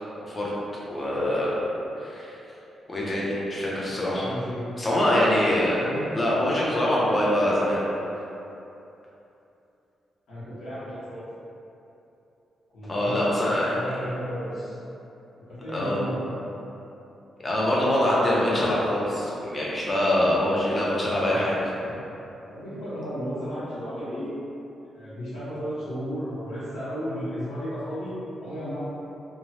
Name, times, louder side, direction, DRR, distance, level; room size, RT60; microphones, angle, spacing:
voice 1, 0.2-0.5 0.9-1.6 2.0-2.4 2.9-4.3 4.8-5.9 6.1-7.8 12.8-13.8 15.7-16.0 17.4-21.7, left 1 dB, 20° left, -6 dB, 0.5 m, -24 dB
voice 2, 4.1-4.6 5.8-6.1 10.3-11.2 12.7-13.2 13.4-14.8 15.5-16.4 22.5-24.3 24.9-28.8, equal, 85° left, -12 dB, 1.2 m, -34 dB
3.0 x 2.0 x 2.7 m, 2.9 s
wide cardioid pair, 180°, 0 cm